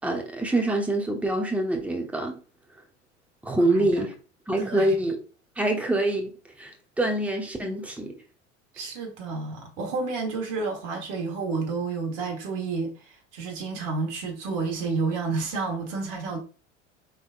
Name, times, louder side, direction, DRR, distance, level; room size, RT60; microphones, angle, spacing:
voice 1, 0.0-2.3 3.4-4.2 4.5-5.2 5.6-6.3 6.6-8.2, right 1 dB, 5° right, 0.9 m, -25 dB
voice 2, 3.7-4.1 4.6-5.0 8.7-16.4, right 4 dB, 55° right, 1.5 m, -30 dB
5.3 x 3.5 x 2.5 m
hypercardioid pair, 75°, 36 cm